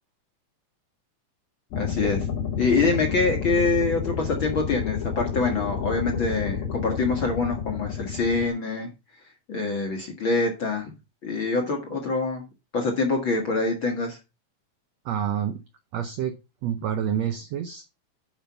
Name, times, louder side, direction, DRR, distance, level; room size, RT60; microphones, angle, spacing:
sound 1, 1.7-8.5, left 6 dB, 85° left, 3.6 m, -30 dB
voice 1, 1.7-2.2 2.6-8.9 9.5-10.9 11.2-12.4 12.7-14.2, left 3 dB, 50° left, 3 dB, 1.6 m, -25 dB
voice 2, 15.0-15.6 15.9-16.4 16.6-17.8, right 9 dB, 75° right, 8 dB, 1.5 m, -28 dB
9.0 x 5.2 x 5.6 m, 0.27 s
omnidirectional pair, 4.1 m